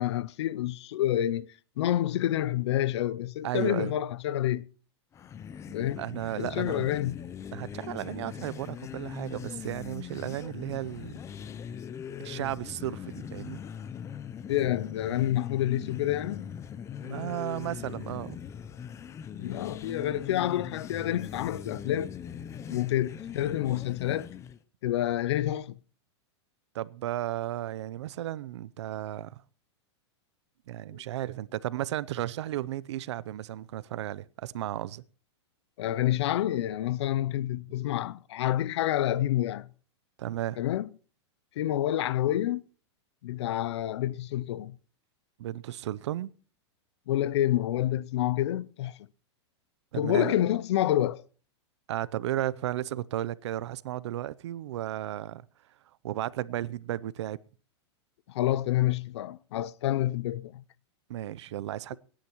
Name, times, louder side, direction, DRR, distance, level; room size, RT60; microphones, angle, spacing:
voice 1, 0.0-4.7 5.7-6.0 6.3-7.2 14.5-16.5 19.3-22.1 22.7-24.3 24.8-25.7 35.8-39.7 40.6-40.9 41.6-42.6 43.2-44.8 47.1-49.0 49.9-51.2 58.3-60.6, left 13 dB, 70° left, 0.6 m, -28 dB
voice 2, 3.4-3.9 6.0-6.9 7.5-11.2 12.2-13.6 17.0-18.4 26.7-29.4 30.7-35.0 40.2-40.6 45.4-46.3 49.9-50.3 51.9-55.4 56.0-57.4 61.1-62.0, right 13 dB, 75° right, 0.6 m, -34 dB
sound 1, 5.1-24.6, left 8 dB, 20° left, 0.6 m, -41 dB
26.5 x 10.0 x 3.0 m
hypercardioid pair, 135°, 15 cm